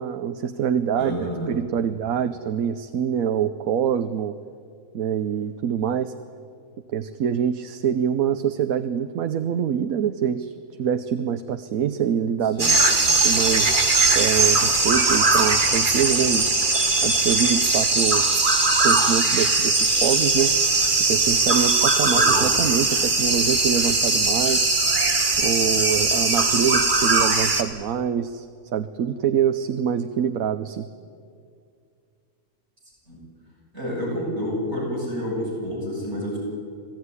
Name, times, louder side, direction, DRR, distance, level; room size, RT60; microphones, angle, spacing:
voice 1, 0.0-1.1 1.5-4.4 4.9-6.2 6.9-10.5 10.8-12.7 13.2-16.5 17.0-18.2 18.8-20.5 21.1-24.7 25.4-28.5 28.7-30.9, right 8 dB, 85° right, 10 dB, 1.2 m, -25 dB
voice 2, 0.9-1.5 12.5-12.8 22.1-22.4 33.1-33.2 33.7-36.4, equal, 50° right, -4 dB, 8.2 m, -29 dB
sound 1, 12.6-27.6, right 3 dB, 35° right, 1.8 m, -20 dB
26.5 x 17.0 x 9.8 m, 2.3 s
omnidirectional pair, 1.4 m